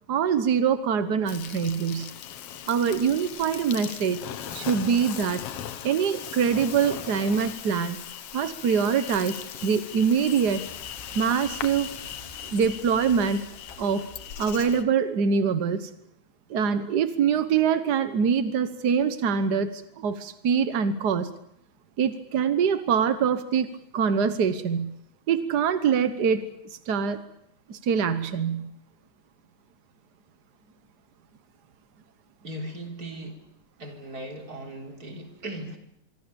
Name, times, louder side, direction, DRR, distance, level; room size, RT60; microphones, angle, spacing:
voice 1, 0.1-2.1 2.7-4.2 4.5-5.4 5.8-8.0 8.3-10.6 11.1-11.9 12.5-13.5 13.8-14.1 14.4-15.9 16.5-21.3 22.0-24.9 25.3-27.2 27.7-28.7, right 6 dB, 65° right, 11 dB, 1.0 m, -24 dB
Insect, 1.3-14.8, left 10 dB, 60° left, 1.9 m, -39 dB
sound 1, 10.4-14.9, equal, 15° left, 6.5 m, -50 dB
voice 2, 32.4-33.4 33.8-35.8, right 1 dB, 30° right, 3 dB, 4.0 m, -38 dB
25.5 x 24.0 x 7.0 m, 0.76 s
omnidirectional pair, 3.4 m